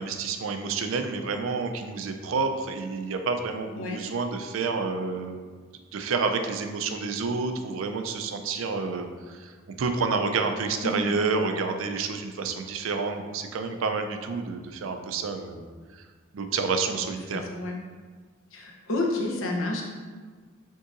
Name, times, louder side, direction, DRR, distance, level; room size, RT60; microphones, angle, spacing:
voice 1, 0.0-5.4 5.9-15.7 15.9-16.0 16.3-17.5, right 4 dB, 80° right, 6 dB, 0.4 m, -29 dB
voice 2, 17.3-17.8 18.5-19.8, left 2 dB, 80° left, 0 dB, 0.8 m, -29 dB
5.3 x 3.7 x 2.5 m, 1.5 s
head